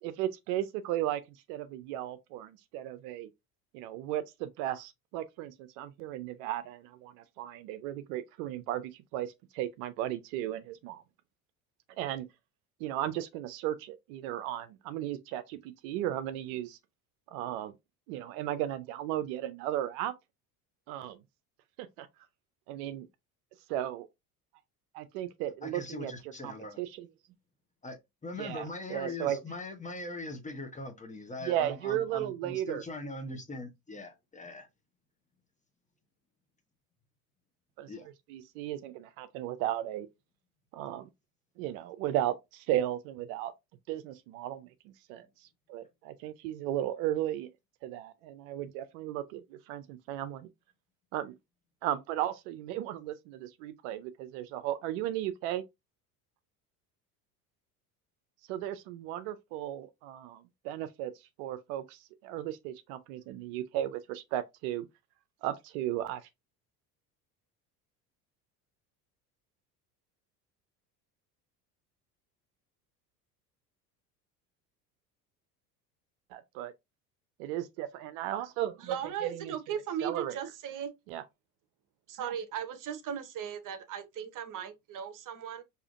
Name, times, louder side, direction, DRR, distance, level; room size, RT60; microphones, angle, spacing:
voice 1, 0.0-1.2 1.5-3.3 3.7-11.0 12.0-12.3 12.8-16.8 17.3-17.7 18.1-20.1 20.9-21.2 22.0-22.1 22.7-23.1 23.7-24.1 24.9-27.1 28.4-29.4 31.4-32.8 37.8-37.9 38.3-40.1 40.7-41.1 41.6-43.5 43.9-45.3 45.7-47.5 47.8-50.5 51.1-51.3 51.8-55.6 58.5-61.1 61.4-64.9 65.4-66.3 76.3-76.7 77.4-79.0 79.2-79.5 80.0-80.4 81.1-81.2 82.2-82.3, right 12 dB, 65° right, 0.6 m, -35 dB
voice 2, 25.6-26.9 27.8-34.7 37.9-38.1, left 2 dB, 15° left, 0.9 m, -41 dB
voice 3, 78.8-80.9 82.1-85.6, right 8 dB, 45° right, 0.9 m, -37 dB
4.8 x 2.8 x 2.4 m
hypercardioid pair, 70°, 45 cm